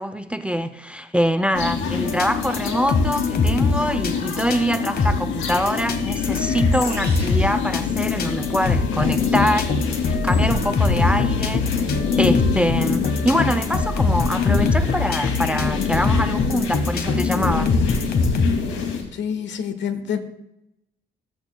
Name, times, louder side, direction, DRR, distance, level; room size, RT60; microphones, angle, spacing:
voice 1, 0.0-11.8 12.2-18.0, equal, 5° right, 11 dB, 0.5 m, -24 dB
sound 1, 1.5-19.0, left 6 dB, 90° left, 2.3 m, -26 dB
sound 2, 2.0-18.5, left 3 dB, 50° left, 1.3 m, -23 dB
sound 3, 6.8-7.4, right 4 dB, 50° right, 2.9 m, -38 dB
voice 2, 19.1-20.2, left 7 dB, 70° left, 9 dB, 1.2 m, -27 dB
15.5 x 8.5 x 2.2 m, 0.84 s
cardioid pair, 90°, 20 cm